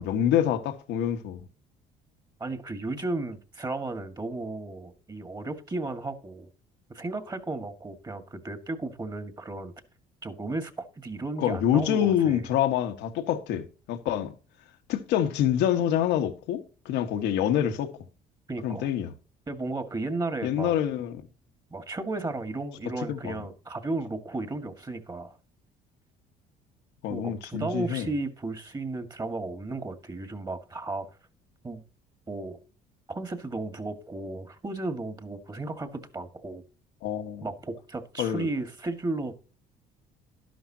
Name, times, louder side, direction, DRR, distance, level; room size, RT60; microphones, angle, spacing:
voice 1, 0.0-1.4 11.4-14.3 14.9-17.9 18.6-19.1 20.4-21.2 23.1-23.4 27.0-28.1 37.0-37.5 38.2-38.5, left 10 dB, 80° left, 1.7 m, -26 dB
voice 2, 2.4-6.5 6.9-9.7 10.2-12.5 18.5-18.9 19.5-20.7 21.7-25.4 27.1-31.1 31.6-31.8 32.3-32.6 33.1-36.6 37.4-39.3, right 2 dB, 25° right, 2.0 m, -34 dB
12.0 x 11.0 x 2.9 m
cardioid pair, 95°, 18 cm